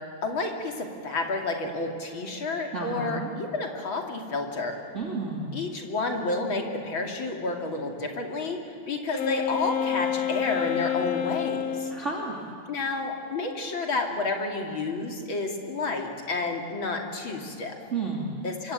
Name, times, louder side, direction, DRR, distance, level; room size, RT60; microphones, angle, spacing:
voice 1, 0.2-4.7 5.5-11.9 12.7-17.8 18.4-18.7, left 3 dB, 40° left, 2 dB, 3.2 m, -30 dB
voice 2, 2.7-3.3 4.9-5.5 11.9-12.4 17.9-18.3, right 3 dB, 25° right, -2 dB, 2.8 m, -31 dB
Wind instrument woodwind instrument, 9.1-12.0, left 10 dB, 70° left, 1.7 m, -29 dB
26.0 x 24.0 x 9.1 m, 2.5 s
omnidirectional pair, 3.5 m